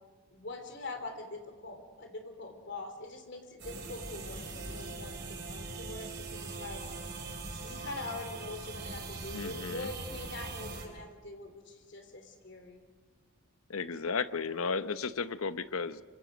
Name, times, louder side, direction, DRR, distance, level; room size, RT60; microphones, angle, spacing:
voice 1, 0.3-6.8 7.5-12.8, left 2 dB, 55° left, 5 dB, 3.2 m, -44 dB
sound 1, 3.6-10.9, right 3 dB, 50° right, 3.6 m, -41 dB
voice 2, 9.3-9.9 13.7-16.0, left 5 dB, 80° left, 13 dB, 0.8 m, -34 dB
26.0 x 24.5 x 5.2 m, 1.5 s
head